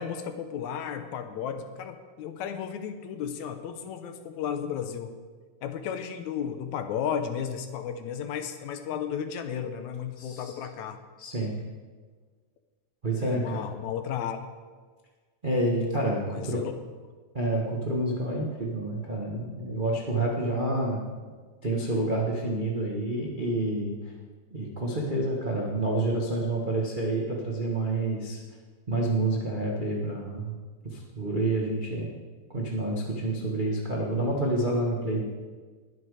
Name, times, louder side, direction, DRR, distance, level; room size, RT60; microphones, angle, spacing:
voice 1, 0.0-5.1 5.6-11.0 13.2-14.4 16.3-16.7, left 8 dB, 75° left, 8 dB, 2.1 m, -34 dB
voice 2, 10.2-10.5 11.2-11.5 13.0-13.6 15.4-16.6 17.3-21.0 21.6-23.9 24.5-28.4 28.9-30.5 30.8-32.1 32.5-35.2, right 2 dB, 40° right, -2 dB, 0.7 m, -28 dB
20.5 x 7.5 x 4.9 m, 1.5 s
omnidirectional pair, 3.5 m